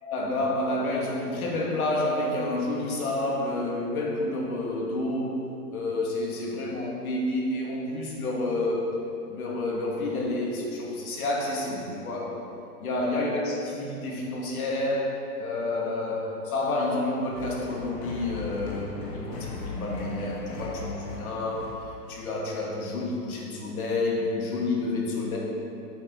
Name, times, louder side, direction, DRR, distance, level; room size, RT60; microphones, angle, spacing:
voice 1, 0.0-5.4 5.7-9.0 9.3-12.5 12.8-21.7 22.1-25.4, left 2 dB, 60° left, -2 dB, 2.4 m, -29 dB
sound 1, 17.3-22.2, left 4 dB, 75° left, 1.9 m, -38 dB
8.5 x 8.3 x 4.7 m, 2.7 s
hypercardioid pair, 150°, 49 cm